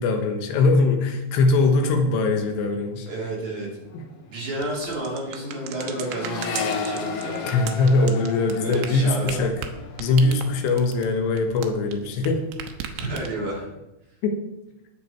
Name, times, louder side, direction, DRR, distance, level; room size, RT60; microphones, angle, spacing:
voice 1, 0.0-3.1 3.9-4.0 7.4-9.5 10.0-12.4 14.2-14.4, left 3 dB, 80° left, 4 dB, 3.5 m, -21 dB
voice 2, 3.1-3.7 4.2-7.5 8.6-9.4 12.9-13.7, right 1 dB, 45° right, -5 dB, 4.3 m, -31 dB
Accelerating revving vroom, 3.4-3.7 3.9-11.4 11.8-12.4, left 5 dB, 65° left, 2.9 m, -35 dB
sound 1, 4.6-12.3 12.5-13.6, right 8 dB, 85° right, 3.1 m, -36 dB
20.0 x 7.0 x 4.5 m, 0.95 s
omnidirectional pair, 4.9 m